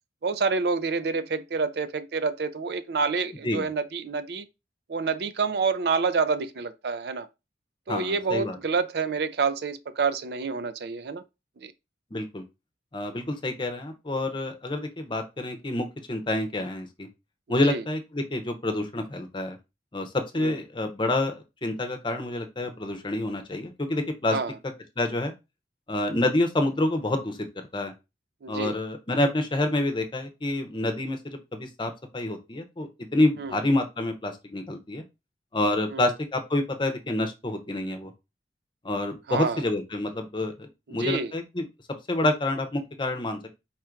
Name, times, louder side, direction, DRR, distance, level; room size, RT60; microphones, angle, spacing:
voice 1, 0.2-4.4 4.9-7.3 7.9-11.2 11.6-11.7 17.6-17.8 20.4-20.5 24.3-24.5 28.4-28.7 33.4-33.5 35.9-36.1 39.3-39.6 40.9-41.3, right 4 dB, 60° right, 0.4 m, -28 dB
voice 2, 7.9-8.6 12.1-12.4 12.9-17.1 17.5-19.6 19.9-24.4 25.0-25.3 25.9-27.4 27.7-27.9 28.5-35.0 35.5-38.1 38.8-41.7 42.1-43.4, left 1 dB, 25° left, 0.7 m, -28 dB
4.3 x 2.5 x 4.4 m
head